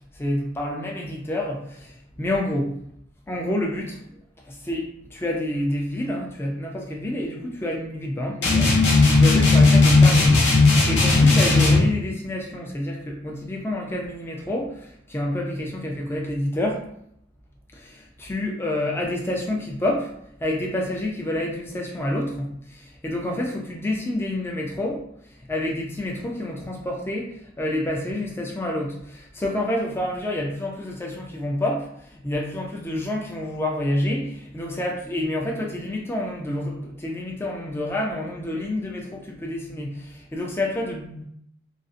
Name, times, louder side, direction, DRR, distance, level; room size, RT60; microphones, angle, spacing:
voice 1, 0.1-2.8 3.3-4.2 4.4-16.8 17.7-20.1 20.4-41.2, left 1 dB, 10° left, 0 dB, 0.3 m, -28 dB
sound 1, 8.4-11.9, left 3 dB, 55° left, 0.6 m, -16 dB
2.4 x 2.0 x 2.5 m, 0.70 s
head